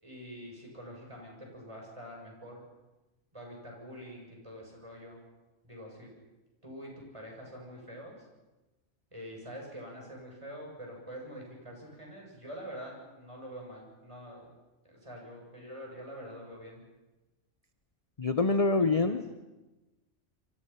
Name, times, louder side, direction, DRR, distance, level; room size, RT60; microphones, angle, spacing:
voice 1, 0.0-2.6 3.3-5.2 5.6-6.1 6.6-8.2 9.1-14.5 14.8-16.8 18.9-19.1, equal, 25° right, -1 dB, 7.6 m, -45 dB
voice 2, 18.2-19.4, left 3 dB, 30° left, 9 dB, 0.9 m, -26 dB
28.0 x 24.0 x 5.9 m, 1.1 s
omnidirectional pair, 1.3 m